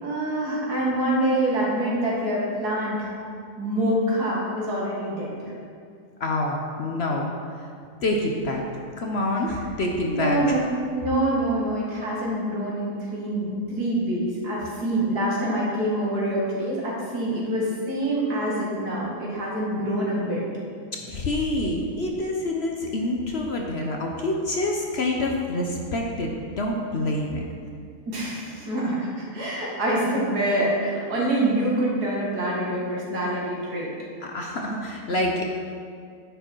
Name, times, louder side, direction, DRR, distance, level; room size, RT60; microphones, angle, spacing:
voice 1, 0.0-3.1 3.6-5.4 10.0-20.4 28.1-33.9, right 1 dB, 80° right, -5 dB, 2.6 m, -26 dB
voice 2, 6.2-7.3 8.0-8.6 9.0-10.5 20.9-27.4 34.2-35.4, left 1 dB, 50° left, 0 dB, 0.9 m, -26 dB
10.0 x 7.1 x 4.5 m, 2.3 s
omnidirectional pair, 1.7 m